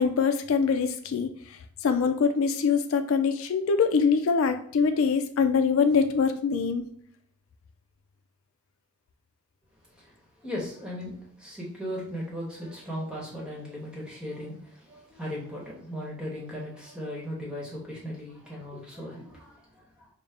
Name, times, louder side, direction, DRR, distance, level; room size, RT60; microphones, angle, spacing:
voice 1, 0.0-6.8, left 5 dB, 70° left, 7 dB, 0.3 m, -24 dB
voice 2, 10.4-20.1, equal, 5° right, -4 dB, 1.1 m, -37 dB
5.1 x 2.1 x 3.2 m, 0.64 s
head